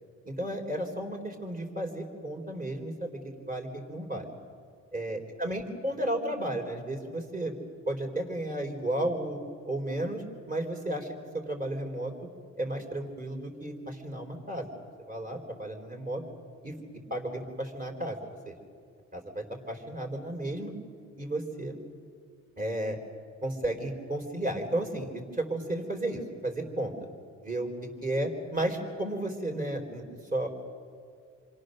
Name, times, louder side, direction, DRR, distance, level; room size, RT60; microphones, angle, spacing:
voice 1, 0.2-4.3 4.9-7.5 7.9-9.4 9.7-12.1 12.6-14.7 15.1-16.2 16.6-16.7 17.1-18.2 18.5-18.6 19.1-20.7 21.2-21.8 22.6-23.0 23.4-26.9 27.4-30.0 30.3-30.5, right 1 dB, 30° right, 2 dB, 3.9 m, -33 dB
29.0 x 23.0 x 6.6 m, 2.2 s
cardioid pair, 90°, 30 cm